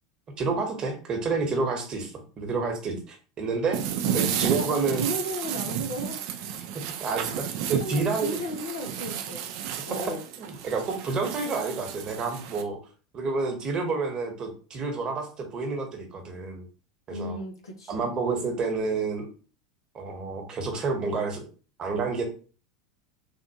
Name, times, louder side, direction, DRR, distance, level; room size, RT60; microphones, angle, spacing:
voice 1, 0.4-3.8 4.1-5.1 6.7-8.4 10.4-12.8 13.1-16.6 17.1-17.4 17.9-19.3 19.9-21.4 21.8-22.2, right 4 dB, 35° right, 3 dB, 1.0 m, -29 dB
sound 1, 3.7-12.6, right 9 dB, 60° right, 0.4 m, -32 dB
voice 2, 4.1-6.2 7.8-9.5 9.9-10.2 17.1-18.1, right 1 dB, 85° left, 3 dB, 0.9 m, -34 dB
3.4 x 2.5 x 2.8 m, 0.38 s
hypercardioid pair, 85°, 2 cm